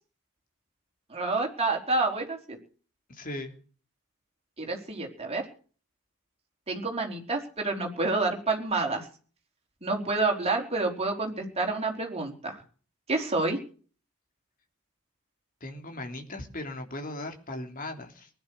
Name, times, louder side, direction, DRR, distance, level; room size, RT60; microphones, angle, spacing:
voice 1, 1.1-2.6 4.6-5.5 6.7-9.1 9.8-12.6 13.1-13.6, right 3 dB, 30° right, 1 dB, 4.5 m, -28 dB
voice 2, 3.1-3.5 15.6-18.3, left 1 dB, 40° left, 4 dB, 3.2 m, -38 dB
20.0 x 11.0 x 6.5 m, 0.41 s
head